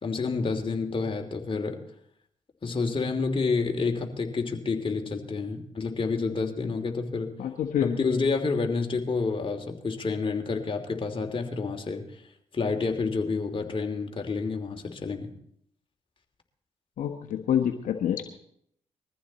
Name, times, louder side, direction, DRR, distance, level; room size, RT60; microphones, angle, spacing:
voice 1, 0.0-1.8 2.6-7.3 7.8-12.2 12.5-15.3, left 4 dB, 40° left, 3 dB, 2.9 m, -29 dB
voice 2, 7.4-8.0 17.0-18.3, left 9 dB, 70° left, 5 dB, 1.2 m, -27 dB
21.0 x 14.5 x 4.3 m, 0.71 s
supercardioid pair, 50°, 14 cm